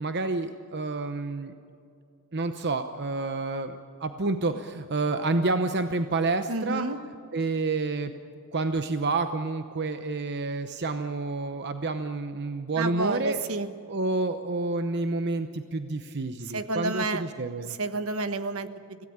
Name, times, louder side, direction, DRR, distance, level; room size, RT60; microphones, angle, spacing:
voice 1, 0.0-1.5 2.3-6.9 7.3-8.1 8.5-13.4 13.9-17.8, right 3 dB, 50° right, 8 dB, 0.9 m, -29 dB
voice 2, 6.5-7.0 12.8-13.7 16.5-17.2 17.7-19.0, right 2 dB, 70° right, 10 dB, 1.3 m, -30 dB
26.0 x 17.0 x 8.8 m, 2.6 s
head